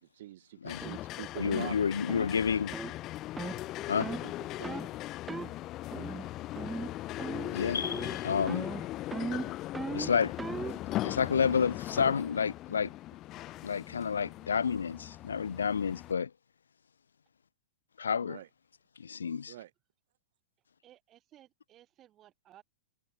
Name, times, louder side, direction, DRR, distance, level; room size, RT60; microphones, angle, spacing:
voice 1, 0.0-2.2 3.8-5.0 18.2-18.5 19.4-19.7, right 14 dB, 60° right, 2.6 m, -46 dB
sound 1, 0.7-16.1, left 15 dB, 35° left, 0.3 m, -39 dB
sound 2, 0.8-1.0 1.4-1.7 2.1-2.3 2.7-2.9 3.4-3.6 4.0-4.3 4.6-4.9 5.3-5.5 5.9-6.3 6.6-6.9 7.2-7.6 7.8-8.2 8.5-10.8, right 3 dB, 10° right, 1.1 m, -38 dB
voice 2, 1.4-2.8 3.9-4.1 7.5-8.6 9.9-10.3 11.0-12.9 13.6-16.3 18.0-18.4 19.0-19.5, left 6 dB, 80° left, 0.7 m, -30 dB
voice 3, 9.8-10.6 11.3-11.4 20.8-22.6, right 13 dB, 30° right, 7.2 m, -59 dB
hypercardioid pair, 110°, 0 cm